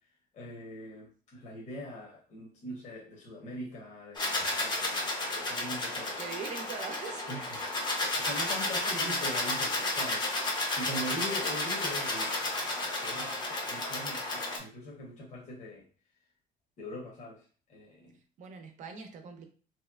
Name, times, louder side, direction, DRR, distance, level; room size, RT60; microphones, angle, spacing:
voice 1, 0.3-6.2 7.3-7.5 7.8-15.9 16.8-18.2, equal, 50° left, -3 dB, 0.9 m, -42 dB
sound 1, 4.1-14.6, left 2 dB, 30° left, 0.6 m, -32 dB
voice 2, 6.2-7.3 18.4-19.5, right 5 dB, 55° right, 5 dB, 0.6 m, -41 dB
3.1 x 2.8 x 2.3 m, 0.39 s
cardioid pair, 155°, 15 cm